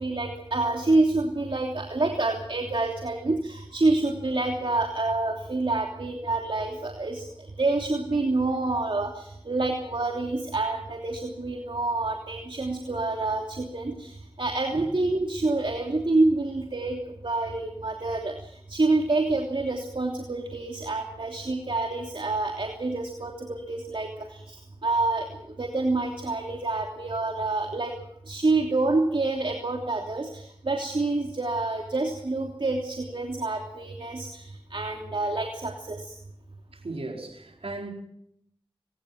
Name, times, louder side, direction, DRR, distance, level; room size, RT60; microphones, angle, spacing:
voice 1, 0.0-7.2 7.6-14.1 14.4-18.3 18.7-24.1 24.5-27.9 28.3-34.4 34.7-36.1, right 2 dB, 60° right, 3.0 m, -27 dB
voice 2, 36.7-37.9, right 2 dB, 85° right, 4.7 m, -37 dB
25.5 x 18.5 x 6.0 m
wide cardioid pair, 40°, 10 cm